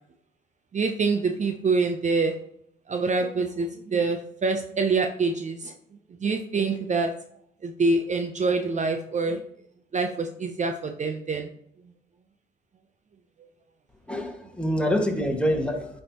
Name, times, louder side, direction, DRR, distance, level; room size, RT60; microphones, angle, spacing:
voice 1, 0.7-2.4 2.9-5.7 6.2-7.1 7.6-9.4 9.9-11.5, right 4 dB, 35° right, 6 dB, 0.7 m, -25 dB
voice 2, 14.1-16.0, equal, 5° left, 2 dB, 1.7 m, -26 dB
9.5 x 5.5 x 2.9 m, 0.71 s
cardioid pair, 90°, 20 cm